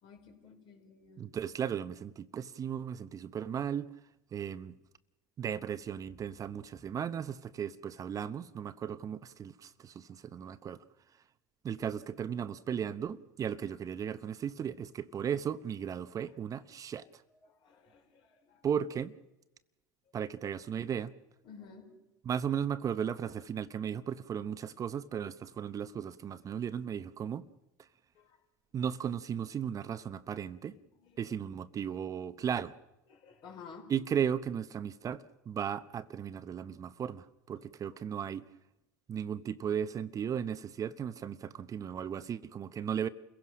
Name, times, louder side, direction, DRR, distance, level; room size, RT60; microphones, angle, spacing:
voice 1, 0.0-1.3 16.5-16.7 17.4-18.6 21.4-21.9 28.2-28.4 30.7-31.2 33.1-33.9 37.5-37.6, left 5 dB, 55° left, 5.3 m, -53 dB
voice 2, 1.2-3.9 4.3-4.8 5.4-10.8 11.6-17.0 18.6-19.1 20.1-21.1 22.2-27.5 28.7-30.8 31.2-32.7 33.9-38.4 39.1-43.1, right 8 dB, 35° right, 0.9 m, -36 dB
29.0 x 16.5 x 6.3 m
supercardioid pair, 95°, 10 cm